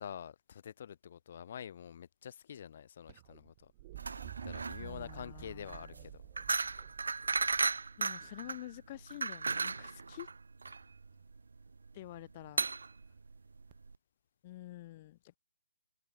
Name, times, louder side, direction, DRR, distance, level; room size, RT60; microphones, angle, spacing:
voice 1, 0.0-3.7 4.4-6.2, left 9 dB, 45° left, 1.1 m, -47 dB
sound 1, 3.1-9.0 10.6-11.1 13.7-13.8, right 17 dB, 25° right, 2.2 m, -51 dB
sound 2, 4.0-13.9, right 4 dB, 85° right, 0.3 m, -36 dB
voice 2, 4.8-6.1 8.0-10.3 11.9-12.7 14.4-15.4, left 16 dB, 30° left, 0.3 m, -48 dB
hypercardioid pair, 165°, 0 cm